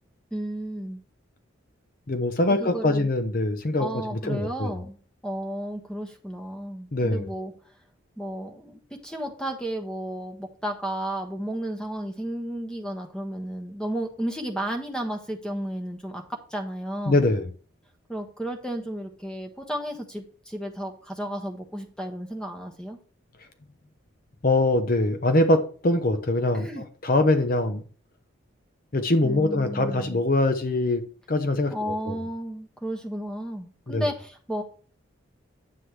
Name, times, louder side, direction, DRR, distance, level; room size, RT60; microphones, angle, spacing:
voice 1, 0.3-1.0 2.6-3.1 3.8-5.0 5.2-7.5 8.2-17.3 18.1-23.0 26.5-26.8 29.2-30.2 31.7-34.6, right 1 dB, 5° left, 1.1 m, -33 dB
voice 2, 2.1-4.7 6.9-7.3 17.1-17.4 24.4-27.8 28.9-31.0 31.3-32.2 33.9-34.1, left 2 dB, 45° left, 0.7 m, -23 dB
9.6 x 7.6 x 3.2 m
head